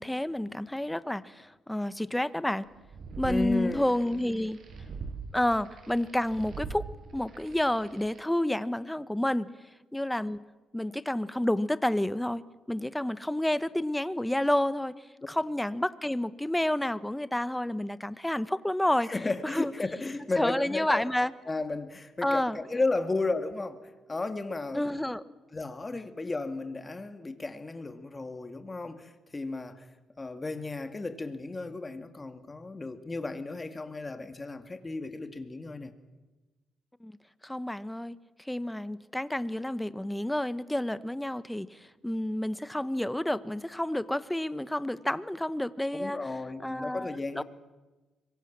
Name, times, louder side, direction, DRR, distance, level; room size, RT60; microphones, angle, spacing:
voice 1, 0.0-2.7 3.2-4.6 5.3-6.8 7.1-9.5 9.9-10.4 10.7-19.1 19.4-19.7 20.4-21.3 22.2-22.6 24.7-25.2 37.0-37.2 37.4-38.2 38.4-46.2 46.6-47.4, left 1 dB, 5° left, 1.0 m, -30 dB
sound 1, 2.7-8.2, right 5 dB, 60° right, 7.5 m, -43 dB
voice 2, 3.2-3.9 15.2-15.3 19.0-21.0 21.5-23.8 24.1-25.0 25.5-29.9 30.2-35.9 45.9-47.4, left 3 dB, 25° left, 2.3 m, -34 dB
25.5 x 23.0 x 7.5 m
cardioid pair, 90°, 0 cm